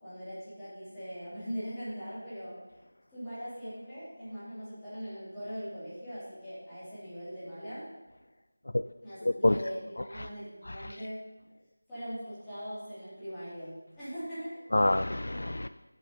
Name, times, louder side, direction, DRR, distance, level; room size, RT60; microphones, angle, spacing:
voice 1, 0.0-2.6 3.1-7.9 9.0-11.2 11.9-14.6, equal, 5° left, -16 dB, 3.5 m, -41 dB
voice 2, 9.2-9.6 10.0-10.3 10.7-10.9 14.7-15.7, left 1 dB, 55° left, 11 dB, 0.3 m, -27 dB
9.6 x 7.3 x 5.5 m, 1.2 s
figure-of-eight pair, 170°, 0 cm